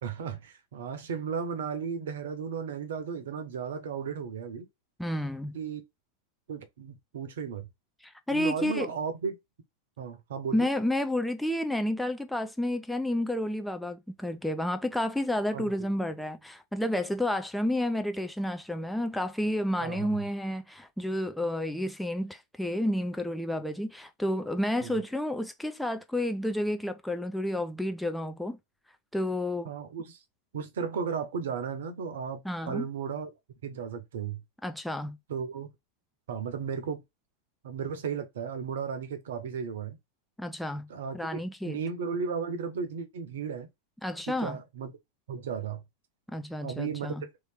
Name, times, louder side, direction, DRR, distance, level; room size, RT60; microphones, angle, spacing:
voice 1, 0.0-4.7 5.5-5.8 6.5-7.7 8.3-9.3 10.0-10.7 15.5-15.7 19.8-20.2 24.8-25.0 29.6-30.2 30.5-33.3 33.6-34.4 35.3-35.7 36.3-37.0 37.6-40.0 40.9-43.7 44.3-44.9 45.3-45.8 46.6-47.1, right 6 dB, 60° right, 0.8 m, -35 dB
voice 2, 5.0-5.6 8.0-8.9 10.5-28.6 29.1-29.7 32.4-32.8 34.6-35.2 40.4-40.9 41.1-41.8 44.0-44.6 46.3-47.2, left 1 dB, ahead, 0.4 m, -30 dB
3.1 x 2.9 x 3.3 m
figure-of-eight pair, 90°, 0 cm